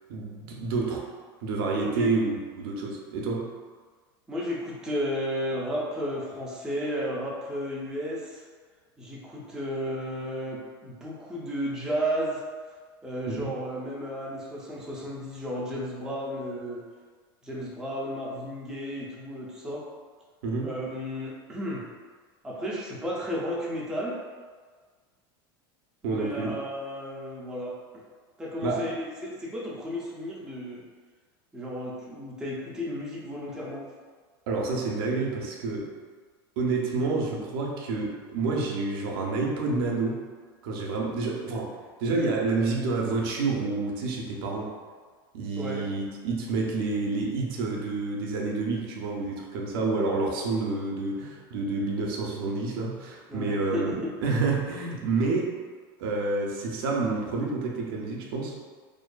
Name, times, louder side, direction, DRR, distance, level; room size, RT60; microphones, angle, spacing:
voice 1, 0.1-1.1 1.4-3.5 13.3-13.5 20.4-20.7 26.0-26.5 28.6-28.9 34.5-35.9 36.6-40.2 40.6-44.7 45.3-55.6 56.0-58.6, right 3 dB, 70° right, -1 dB, 0.5 m, -29 dB
voice 2, 1.8-2.2 4.3-8.4 9.0-12.4 13.0-16.8 17.4-19.9 20.6-21.9 22.4-24.2 26.0-28.0 28.4-30.9 31.5-33.9 45.6-45.9 53.3-54.2, equal, 5° right, -5 dB, 0.4 m, -33 dB
2.5 x 2.4 x 2.2 m, 1.5 s
supercardioid pair, 125°, 13 cm